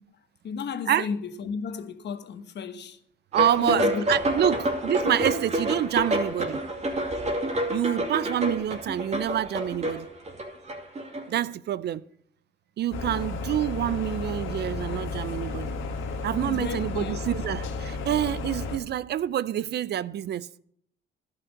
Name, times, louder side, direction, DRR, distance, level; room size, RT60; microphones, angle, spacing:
voice 1, 0.4-3.0 3.6-4.0 16.5-17.2, left 6 dB, 60° left, 1.2 m, -33 dB
sound 1, 3.3-11.4, right 1 dB, 35° right, 2.5 m, -28 dB
voice 2, 3.3-6.6 7.7-10.1 11.3-12.0 12.8-15.8 16.2-20.5, right 11 dB, 55° right, 0.4 m, -27 dB
sound 2, 12.9-18.8, left 3 dB, 85° left, 1.3 m, -33 dB
11.5 x 5.9 x 8.3 m
cardioid pair, 90°, 20 cm